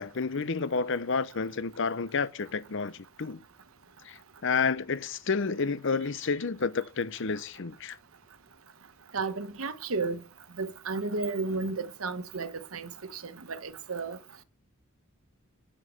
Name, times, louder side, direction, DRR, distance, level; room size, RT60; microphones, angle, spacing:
voice 1, 0.0-3.4 4.0-8.0, left 5 dB, 60° left, 0.7 m, -30 dB
voice 2, 9.1-10.2 10.6-14.2, right 3 dB, 75° right, 1.1 m, -33 dB
8.0 x 7.6 x 6.7 m
head